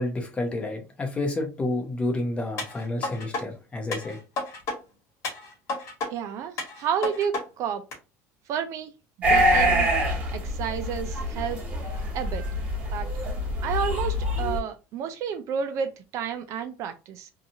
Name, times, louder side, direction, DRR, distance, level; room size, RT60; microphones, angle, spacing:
voice 1, 0.0-4.2, left 2 dB, 15° left, 0.8 m, -29 dB
sound 1, 2.6-3.4 3.9-4.8 5.2-6.1 6.6-7.4 7.9-8.0, left 3 dB, 50° left, 1.3 m, -32 dB
voice 2, 6.1-7.8 8.5-8.9 9.3-9.9 10.3-11.6 12.1-12.4 12.9-13.1 13.6-17.3, right 7 dB, 50° right, 0.4 m, -31 dB
sound 2, 9.2-14.6, equal, 25° right, 1.3 m, -25 dB
2.8 x 2.4 x 2.7 m
cardioid pair, 150°, 7 cm